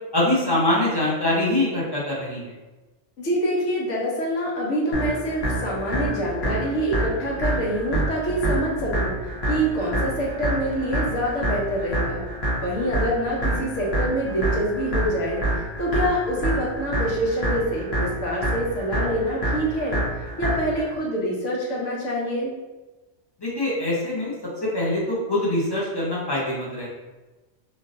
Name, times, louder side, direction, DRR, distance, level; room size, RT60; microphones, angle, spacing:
voice 1, 0.1-2.5 23.4-24.3 24.6-26.9, left 1 dB, 25° left, -6 dB, 0.6 m, -24 dB
voice 2, 3.2-12.2 12.6-20.0 20.4-22.5, equal, 85° left, -3 dB, 1.1 m, -26 dB
sound 1, 4.9-20.9, right 1 dB, 60° left, 1.1 m, -27 dB
3.1 x 2.5 x 2.5 m, 1.2 s
omnidirectional pair, 1.2 m